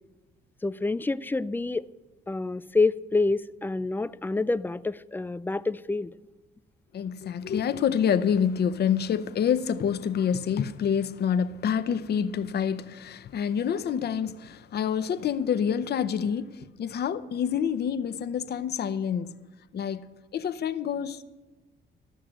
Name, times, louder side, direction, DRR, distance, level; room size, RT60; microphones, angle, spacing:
voice 1, 0.6-1.9 2.3-6.1, left 3 dB, 10° left, 0.3 m, -27 dB
voice 2, 6.9-19.3 19.7-20.0 20.3-21.2, left 8 dB, 55° left, 0.7 m, -27 dB
13.0 x 6.5 x 8.8 m
cardioid pair, 90°, 20 cm